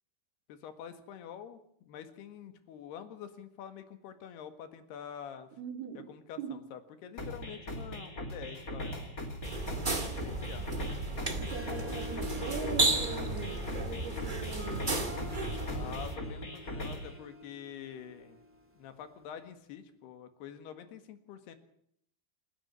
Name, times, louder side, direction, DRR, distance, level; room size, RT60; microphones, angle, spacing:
voice 1, 0.5-5.5 6.0-9.1 10.0-10.7 15.7-18.4 18.8-21.5, left 8 dB, 90° left, 9 dB, 3.8 m, -46 dB
voice 2, 5.6-6.1 6.4-6.6 11.4-14.9, right 7 dB, 80° right, 7 dB, 4.2 m, -41 dB
sound 1, 7.2-17.2, left 1 dB, 25° left, 2.9 m, -40 dB
sound 2, 9.4-16.1, right 2 dB, 35° right, 0.7 m, -34 dB
Harp, 11.3-18.8, left 2 dB, 5° right, 1.1 m, -46 dB
28.0 x 10.0 x 10.0 m, 0.69 s
omnidirectional pair, 4.5 m